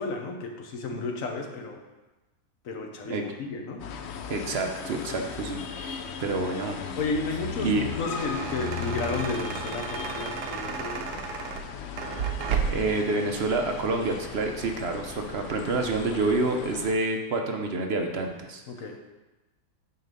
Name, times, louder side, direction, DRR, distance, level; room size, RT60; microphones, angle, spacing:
voice 1, 0.0-1.8 2.6-3.8 7.0-11.3 18.7-19.0, left 3 dB, 55° left, 3 dB, 1.2 m, -33 dB
sound 1, 3.8-16.9, left 7 dB, 80° left, 0.6 m, -37 dB
voice 2, 4.3-6.8 7.6-7.8 12.7-18.6, right 3 dB, 55° right, 3 dB, 0.7 m, -28 dB
sound 2, 7.8-13.0, right 6 dB, 80° right, 1.3 m, -33 dB
9.6 x 3.9 x 5.3 m, 1.1 s
omnidirectional pair, 1.8 m